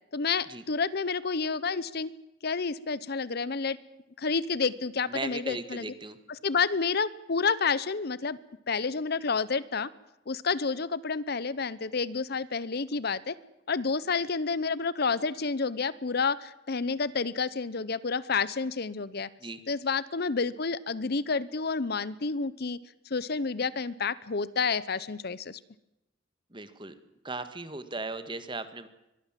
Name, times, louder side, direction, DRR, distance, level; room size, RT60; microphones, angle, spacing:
voice 1, 0.1-2.1 2.4-3.8 4.2-5.8 6.4-8.4 8.7-9.9 10.3-13.4 13.7-19.3 19.7-22.8 23.1-25.6, left 4 dB, 55° left, 19 dB, 0.8 m, -29 dB
voice 2, 5.1-6.2 19.4-19.6 26.5-26.9 27.2-28.9, right 3 dB, 25° right, 12 dB, 1.7 m, -37 dB
24.0 x 20.0 x 7.5 m, 0.89 s
head